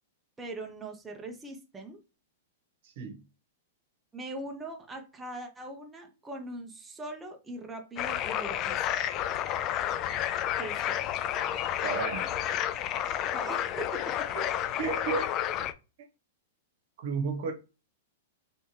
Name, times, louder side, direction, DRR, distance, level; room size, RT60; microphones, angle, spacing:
voice 1, 0.4-2.0 4.1-9.1 10.6-11.0 13.3-14.3, right 1 dB, 10° right, 0.6 m, -41 dB
voice 2, 2.8-3.2 11.8-12.4 14.3-14.5 14.8-15.4 17.0-17.5, right 5 dB, 60° right, 1.0 m, -33 dB
sound 1, 8.0-15.7, left 11 dB, 30° left, 0.3 m, -31 dB
3.4 x 3.1 x 2.8 m
hypercardioid pair, 145°, 0 cm